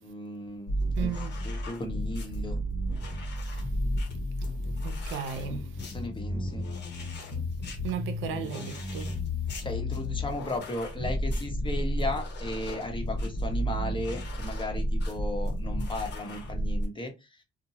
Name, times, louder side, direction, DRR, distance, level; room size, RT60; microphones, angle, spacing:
voice 1, 0.0-1.1 1.4-2.6 5.9-6.7 9.6-17.4, left 1 dB, 25° left, 0.9 m, -36 dB
sound 1, 0.7-16.9, equal, 60° left, 1.0 m, -32 dB
voice 2, 1.0-1.3 3.1-3.2 3.5-3.6 4.8-5.8 7.3-9.2, right 8 dB, 85° right, 0.5 m, -36 dB
2.7 x 2.2 x 2.8 m
cardioid pair, 90°, 20 cm